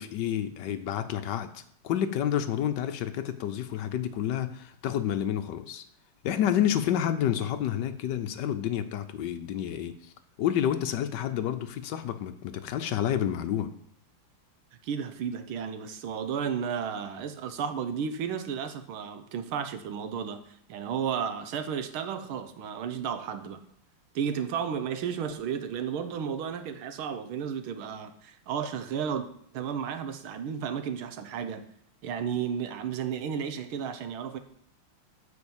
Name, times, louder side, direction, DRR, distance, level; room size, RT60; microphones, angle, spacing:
voice 1, 0.0-5.8 6.2-10.0 10.4-13.7, left 10 dB, 70° left, 10 dB, 1.1 m, -29 dB
voice 2, 14.8-23.6 24.1-29.3 29.5-31.6 32.0-34.4, right 7 dB, 85° right, 9 dB, 1.7 m, -33 dB
9.6 x 4.4 x 7.1 m, 0.67 s
omnidirectional pair, 2.3 m